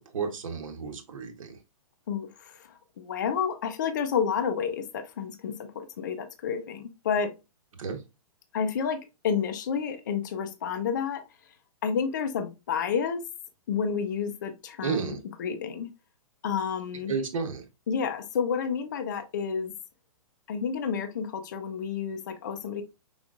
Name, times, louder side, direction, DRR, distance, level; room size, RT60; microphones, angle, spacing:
voice 1, 0.0-1.6 7.8-8.0 14.8-15.2 17.1-17.6, right 5 dB, 65° right, 5 dB, 1.1 m, -32 dB
voice 2, 2.1-7.3 8.5-11.2 11.8-13.2 13.7-15.9 16.4-17.1 17.9-19.7 20.5-22.8, left 6 dB, 30° left, 8 dB, 0.5 m, -30 dB
5.2 x 3.9 x 2.4 m, 0.26 s
hypercardioid pair, 175°, 18 cm